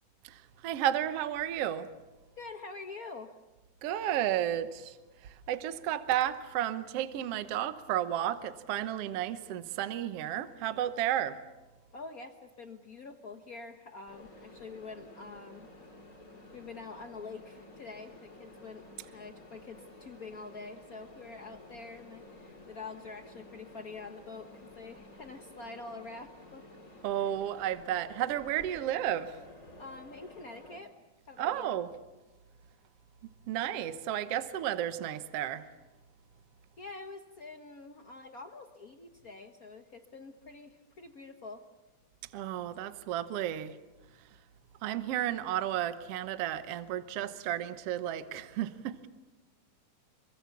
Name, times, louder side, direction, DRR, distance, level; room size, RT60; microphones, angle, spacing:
voice 1, 0.2-1.9 3.8-11.4 27.0-29.4 31.4-31.9 33.2-35.6 42.3-43.8 44.8-49.1, right 11 dB, 65° right, 1.8 m, -33 dB
voice 2, 2.4-3.3 11.9-15.7 16.5-18.8 19.1-26.6 29.8-30.9 31.3-31.7 36.8-41.6, left 3 dB, 70° left, 0.8 m, -46 dB
Mechanisms, 14.1-30.8, left 1 dB, 25° left, 3.8 m, -52 dB
26.5 x 23.5 x 7.2 m
omnidirectional pair, 3.5 m